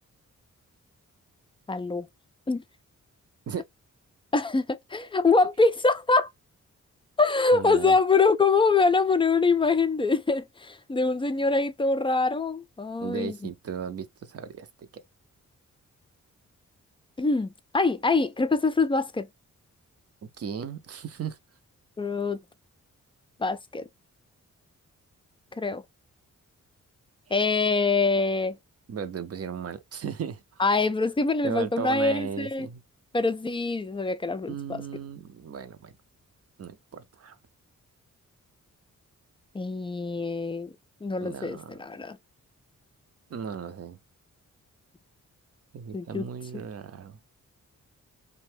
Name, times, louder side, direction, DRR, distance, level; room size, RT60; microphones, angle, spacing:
voice 1, 1.7-2.1 2.5-2.6 4.3-6.3 7.2-13.4 17.2-19.3 22.0-22.4 23.4-23.9 25.6-25.8 27.3-28.6 30.6-32.7 33.1-34.6 39.5-40.7 41.0-42.2 45.9-46.3, left 3 dB, 15° left, 0.4 m, -24 dB
voice 2, 7.5-8.0 13.0-14.9 20.2-21.4 28.9-30.6 31.4-32.8 34.5-35.9 36.6-37.4 41.2-41.8 43.3-44.0 45.7-47.2, right 7 dB, 50° right, 0.6 m, -36 dB
2.6 x 2.2 x 3.1 m
cardioid pair, 80°, 31 cm